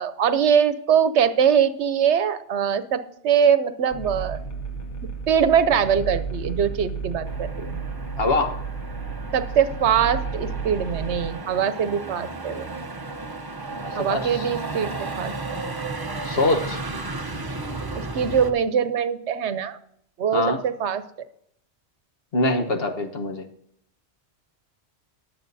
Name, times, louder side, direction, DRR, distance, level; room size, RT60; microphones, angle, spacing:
voice 1, 0.0-4.4 5.3-7.8 9.3-12.7 13.9-15.3 17.9-19.8 20.2-21.0, right 8 dB, 80° right, 12 dB, 1.1 m, -22 dB
sound 1, 3.9-11.3, right 4 dB, 45° left, 1.1 m, -32 dB
Motor vehicle (road), 7.3-18.5, right 3 dB, 25° right, 0.8 m, -34 dB
voice 2, 8.2-8.6 13.7-14.5 16.2-16.8 20.3-20.6 22.3-23.5, left 2 dB, 60° left, 6 dB, 1.3 m, -24 dB
20.5 x 7.5 x 2.7 m, 0.71 s
omnidirectional pair, 1.1 m